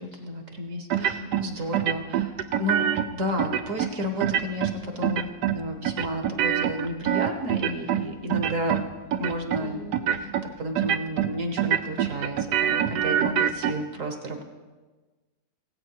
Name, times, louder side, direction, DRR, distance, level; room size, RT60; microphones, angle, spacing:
voice 1, 0.2-2.3 2.6-2.8 3.1-8.8 9.2-9.8 10.2-10.3 10.6-14.4, equal, 50° right, 5 dB, 1.4 m, -32 dB
voice 2, 0.9-1.3 7.8-8.0 9.6-10.3 12.8-13.4, right 1 dB, 85° left, -7 dB, 6.1 m, -42 dB
sound 1, 0.9-1.5 1.7-3.1 3.4-3.9 4.2-4.7 5.0-5.6 5.8-8.0 8.3-8.8 9.1-9.6 9.9-10.4 10.8-11.3 11.6-13.7, right 10 dB, 75° right, 1.2 m, -25 dB
18.0 x 8.5 x 4.7 m, 1.3 s
omnidirectional pair, 1.9 m